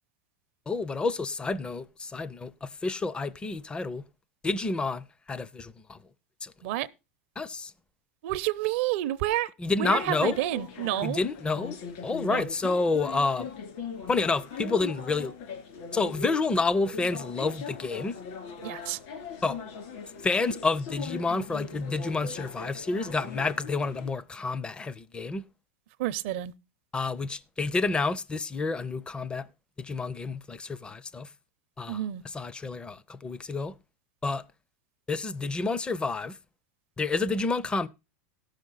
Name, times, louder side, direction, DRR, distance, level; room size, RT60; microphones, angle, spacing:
voice 1, 0.7-4.0 4.4-6.0 6.4-6.5 7.4-7.7 9.6-10.4 11.0-11.8 12.0-13.5 14.1-15.3 15.9-18.1 19.4-19.6 20.2-25.5 26.9-29.5 29.8-31.3 31.8-32.0 32.3-33.7 34.2-34.4 35.1-36.4 37.0-37.9, left 3 dB, 15° left, 0.5 m, -29 dB
voice 2, 8.2-9.5 9.8-11.2 12.3-12.4 18.6-19.0 26.0-26.5 31.9-32.2, right 15 dB, 65° right, 0.6 m, -29 dB
sound 1, 9.8-24.1, left 5 dB, 60° left, 2.7 m, -40 dB
16.0 x 6.5 x 3.9 m
supercardioid pair, 125°, 7 cm